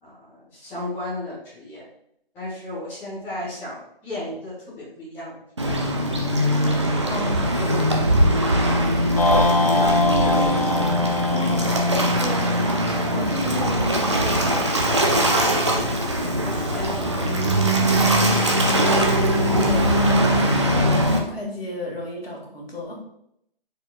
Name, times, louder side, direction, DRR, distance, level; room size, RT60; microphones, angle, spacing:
voice 1, 0.0-1.8 2.3-5.4 9.4-10.7 13.0-13.2 15.3-16.1 16.4-17.9, left 1 dB, 5° left, -12 dB, 1.2 m, -35 dB
Waves surf, 5.6-21.2, equal, 30° right, 0.4 m, -21 dB
voice 2, 7.1-8.4 11.3-12.7 13.1-14.9 19.5-23.0, left 1 dB, 80° left, -2 dB, 1.7 m, -33 dB
sound 1, 9.2-13.5, left 2 dB, 40° left, 0.4 m, -25 dB
4.4 x 4.4 x 2.2 m, 0.73 s
figure-of-eight pair, 150°, 29 cm